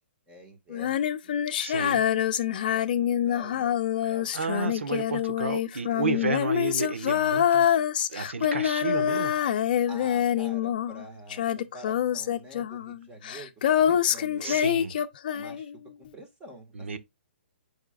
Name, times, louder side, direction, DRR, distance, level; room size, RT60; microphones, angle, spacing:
voice 1, 0.3-1.4 2.3-2.9 3.2-3.8 4.1-4.3 5.9-6.3 9.9-14.6 15.3-15.7 16.0-17.0, right 1 dB, 10° right, 1.8 m, -47 dB
Female singing, 0.7-11.0 11.3-15.8, left 10 dB, 45° left, 0.7 m, -26 dB
voice 2, 1.6-2.0 4.0-7.7 8.1-9.3 14.4-14.9 16.7-17.0, right 4 dB, 90° right, 1.4 m, -32 dB
7.9 x 5.0 x 2.4 m
hypercardioid pair, 160°, 6 cm